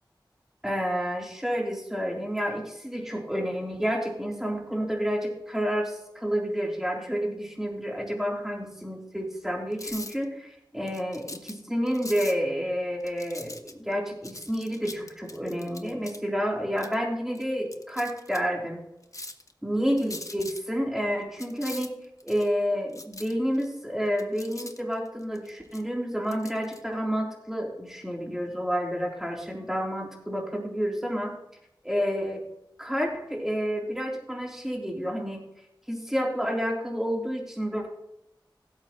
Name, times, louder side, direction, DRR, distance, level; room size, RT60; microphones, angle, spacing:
voice 1, 0.6-18.8 19.6-21.9 22.2-31.3 31.8-32.4 32.8-35.4 35.9-37.9, equal, 5° right, -1 dB, 3.4 m, -29 dB
sound 1, 9.7-10.2 10.9-11.5 11.9-12.3 13.0-13.9 14.2-16.2 16.8-16.9 17.3-17.4 17.7-18.4 19.0-19.5 20.0-20.6 21.4-22.5 22.9-23.6 24.1-25.8 26.3-26.8, left 2 dB, 40° left, 1.0 m, -41 dB
16.0 x 8.2 x 3.1 m, 0.84 s
wide cardioid pair, 45°, 8 cm